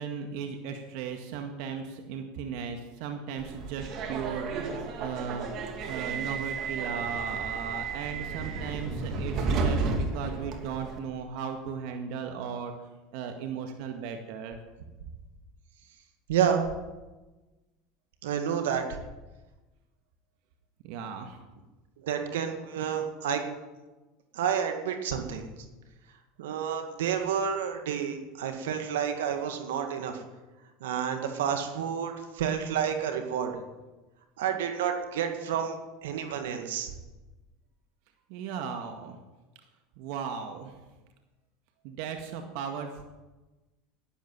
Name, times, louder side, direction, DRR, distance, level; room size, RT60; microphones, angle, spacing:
voice 1, 0.0-12.7 13.1-14.6 20.8-21.4 38.3-39.2 40.0-40.7 41.8-43.0, right 6 dB, 65° right, 5 dB, 1.8 m, -36 dB
Subway metro underground, 3.4-11.0, right 4 dB, 50° right, 2.6 m, -32 dB
voice 2, 16.3-16.6 18.2-18.8 22.0-23.4 24.3-25.4 26.4-30.2 30.8-33.5 34.4-35.7 36.0-36.9, right 8 dB, 85° right, 6 dB, 2.0 m, -29 dB
11.5 x 10.5 x 8.8 m, 1.1 s
hypercardioid pair, 95°, 0 cm